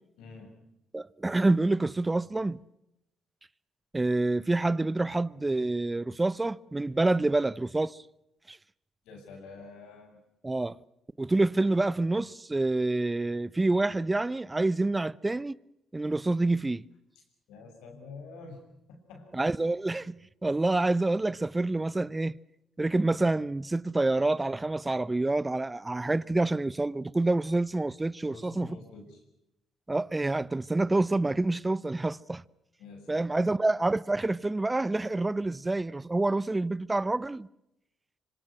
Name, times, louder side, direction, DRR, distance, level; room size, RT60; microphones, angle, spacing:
voice 1, 0.2-0.6 9.0-10.2 17.5-18.6 18.9-19.4 28.3-29.2 32.8-33.7, left 4 dB, 75° left, 6.6 m, -47 dB
voice 2, 0.9-2.6 3.9-8.0 8.5-8.6 10.4-10.8 11.2-15.5 15.9-16.9 19.3-22.4 22.8-28.8 29.9-32.4 33.1-37.5, right 2 dB, 20° right, 0.8 m, -27 dB
26.0 x 25.5 x 6.1 m
hypercardioid pair, 50°, 0 cm